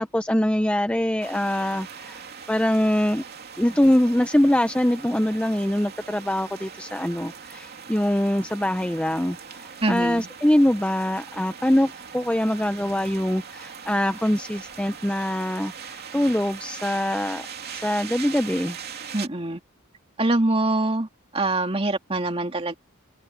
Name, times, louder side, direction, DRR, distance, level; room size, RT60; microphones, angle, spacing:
voice 1, 0.0-2.2 2.5-3.2 3.6-17.5 17.8-18.8, left 1 dB, 5° left, 0.6 m, -23 dB
sound 1, 1.2-19.3, right 6 dB, 50° right, 3.0 m, -40 dB
voice 2, 9.8-10.2 19.1-19.6 20.2-21.1 21.3-22.8, right 2 dB, 25° right, 2.4 m, -24 dB
head